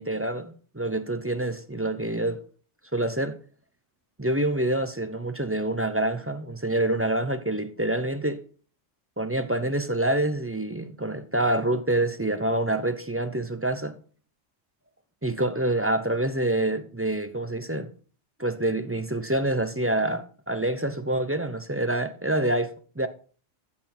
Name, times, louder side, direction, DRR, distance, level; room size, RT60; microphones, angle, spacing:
voice 1, 0.0-2.4 2.9-3.4 4.2-8.4 9.2-14.0 15.2-17.9 18.4-23.1, right 1 dB, 15° right, 0.5 m, -27 dB
14.5 x 6.2 x 4.3 m
omnidirectional pair, 1.3 m